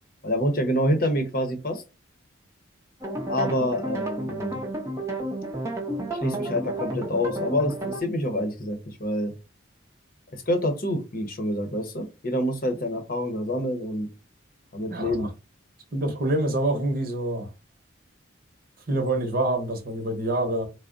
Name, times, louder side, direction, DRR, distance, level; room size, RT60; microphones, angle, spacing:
voice 1, 0.2-1.8 3.3-4.6 6.1-9.3 10.3-14.1 14.7-15.3, equal, 45° left, 0.7 m, -27 dB
sound 1, 3.0-8.0, right 1 dB, 15° right, 0.6 m, -31 dB
voice 2, 14.9-15.3 15.9-17.5 18.9-20.7, right 2 dB, 45° right, 0.9 m, -26 dB
3.4 x 2.1 x 3.7 m
head